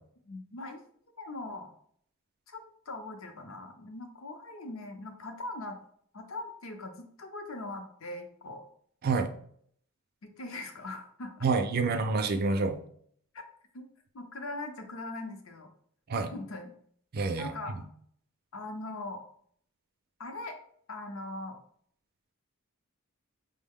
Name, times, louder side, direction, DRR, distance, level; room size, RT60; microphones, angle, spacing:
voice 1, 0.2-0.8 1.2-1.7 2.5-5.8 6.1-8.6 10.2-11.5 13.3-13.4 13.7-13.9 14.1-15.7 16.1-16.7 17.4-17.8 18.5-19.2 20.2-20.6 20.9-21.6, left 2 dB, 65° left, 5 dB, 0.7 m, -41 dB
voice 2, 11.4-12.8 16.1-16.3 17.1-17.8, right 4 dB, 45° right, 8 dB, 0.4 m, -28 dB
5.4 x 2.1 x 3.5 m, 0.64 s
head